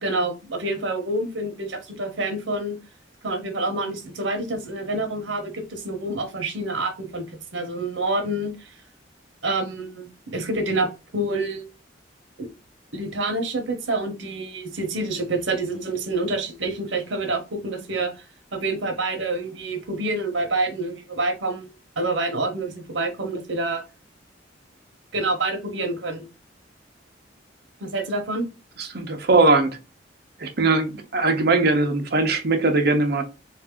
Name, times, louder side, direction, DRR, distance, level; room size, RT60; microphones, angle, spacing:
voice 1, 0.0-2.8 3.2-7.2 7.5-8.7 9.4-11.7 12.4-12.5 12.9-18.2 18.5-21.7 22.0-23.8 25.1-26.2 27.8-28.5, right 2 dB, 85° right, 0.9 m, -27 dB
voice 2, 28.9-29.8 30.4-33.2, right 3 dB, 55° right, 0.7 m, -20 dB
3.4 x 2.6 x 3.6 m
head